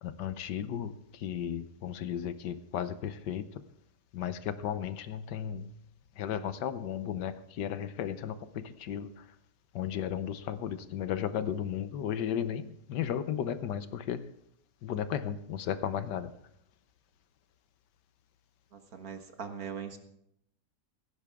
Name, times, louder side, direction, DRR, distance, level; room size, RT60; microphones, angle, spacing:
voice 1, 0.0-3.6 4.1-5.7 6.2-9.3 9.7-14.3 14.8-16.3, left 9 dB, 90° left, 1.5 m, -35 dB
voice 2, 18.7-20.0, right 7 dB, 60° right, 2.0 m, -41 dB
17.0 x 15.5 x 3.6 m
omnidirectional pair, 1.8 m